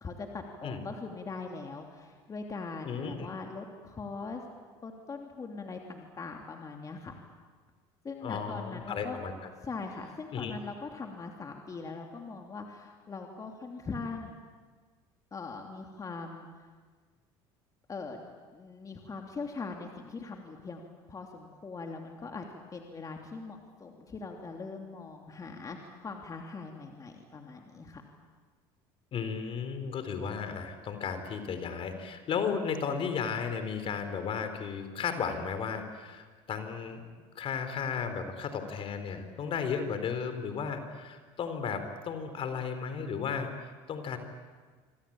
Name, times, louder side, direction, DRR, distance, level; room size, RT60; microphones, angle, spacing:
voice 1, 0.0-4.4 4.8-7.2 8.0-9.2 9.6-14.4 15.3-16.7 17.9-20.8 21.1-28.0, left 4 dB, 30° left, 2 dB, 3.0 m, -41 dB
voice 2, 2.8-3.3 8.2-9.3 10.3-10.5 29.1-37.0 37.4-44.2, left 6 dB, 50° left, 8 dB, 4.0 m, -34 dB
26.0 x 25.5 x 8.8 m, 1.5 s
supercardioid pair, 95°, 12 cm